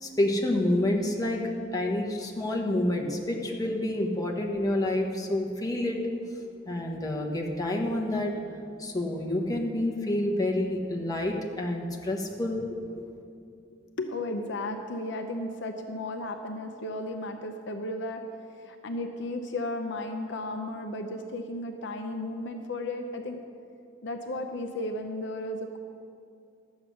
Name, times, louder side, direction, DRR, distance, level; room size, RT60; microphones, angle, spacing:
voice 1, 0.0-6.0 6.7-8.3 8.8-12.6 13.0-13.1, left 1 dB, 20° left, -1 dB, 1.2 m, -28 dB
voice 2, 14.0-18.2 18.6-23.4 24.0-25.8, left 1 dB, 60° left, 5 dB, 0.7 m, -34 dB
12.0 x 8.1 x 6.4 m, 2.5 s
head